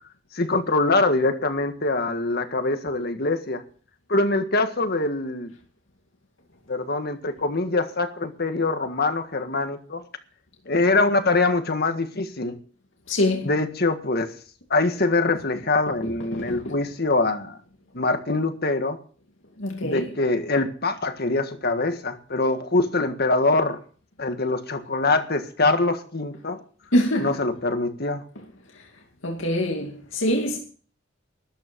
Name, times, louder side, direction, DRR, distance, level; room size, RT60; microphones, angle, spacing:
voice 1, 0.3-3.6 4.1-5.5 6.7-10.0 10.7-12.6 13.4-14.3 14.7-17.6 17.9-19.0 19.8-23.8 24.2-26.6 27.2-28.2, left 2 dB, 55° left, 1.7 m, -24 dB
voice 2, 13.1-13.5 16.3-16.6 19.6-20.1 26.9-27.3 29.2-30.6, left 1 dB, 75° left, 2.4 m, -24 dB
13.0 x 12.0 x 5.3 m
head